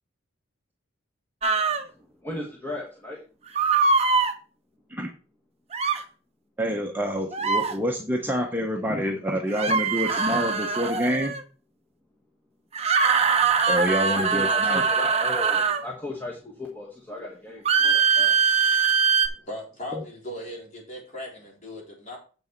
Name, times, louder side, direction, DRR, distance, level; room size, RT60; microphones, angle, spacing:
sound 1, 1.4-1.8 3.6-4.3 5.7-6.0 7.3-7.7 9.5-11.4 12.7-15.8 17.7-19.3, right 5 dB, 30° right, 0.8 m, -22 dB
voice 1, 1.7-3.2 3.8-3.9 13.4-13.7 14.2-18.4, left 2 dB, 10° left, -2 dB, 1.4 m, -37 dB
voice 2, 6.6-11.3 13.7-14.8 19.9-20.0, equal, 10° right, 1 dB, 1.0 m, -27 dB
voice 3, 19.0-22.2, left 1 dB, 35° left, -2 dB, 3.7 m, -39 dB
7.8 x 6.3 x 4.6 m, 0.36 s
head